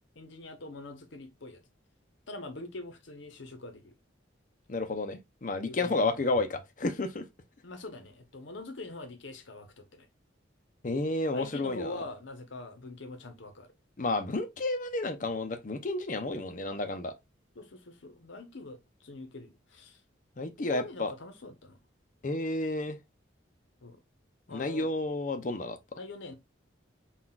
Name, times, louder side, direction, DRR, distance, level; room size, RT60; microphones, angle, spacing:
voice 1, 0.1-1.6 2.3-3.9 5.6-6.2 7.6-10.1 11.3-13.7 17.5-20.0 20.6-21.8 23.8-24.0 24.5-24.9 25.9-26.3, left 2 dB, 75° left, 0.8 m, -44 dB
voice 2, 4.7-7.2 10.8-12.0 14.0-17.1 20.4-21.1 22.2-23.0 24.5-25.8, left 2 dB, 40° left, 0.5 m, -31 dB
5.8 x 2.4 x 2.3 m
head